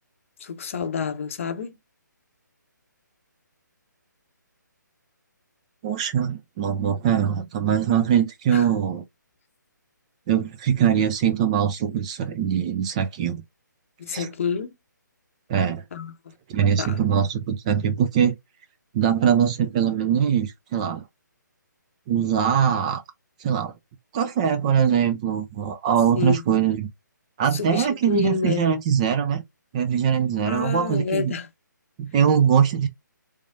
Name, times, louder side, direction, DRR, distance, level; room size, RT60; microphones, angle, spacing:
voice 1, 0.4-1.7 8.5-8.6 14.0-14.7 15.9-16.1 16.8-17.0 26.2-26.4 27.5-28.7 30.5-31.5, left 6 dB, 40° left, 0.7 m, -28 dB
voice 2, 5.8-9.0 10.3-13.4 14.1-14.3 15.5-15.8 16.5-18.4 18.9-21.0 22.1-23.0 23.4-23.7 24.1-26.9 27.4-29.4 29.7-31.3 32.0-32.9, right 8 dB, 20° right, 0.4 m, -22 dB
3.3 x 3.1 x 2.6 m
figure-of-eight pair, 140°, 10 cm